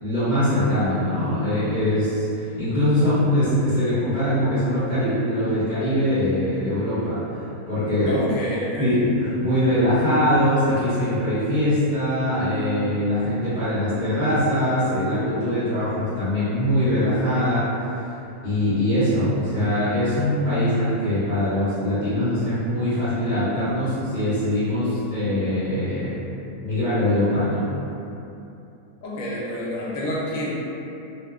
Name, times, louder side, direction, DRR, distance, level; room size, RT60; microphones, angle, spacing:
voice 1, 0.0-7.2 7.7-8.1 8.8-17.7 18.4-26.2 26.6-27.7, left 1 dB, 35° right, -16 dB, 0.8 m, -22 dB
voice 2, 8.1-9.0 29.0-30.5, left 1 dB, 70° left, -6 dB, 0.9 m, -28 dB
2.7 x 2.1 x 2.3 m, 2.8 s
omnidirectional pair, 1.6 m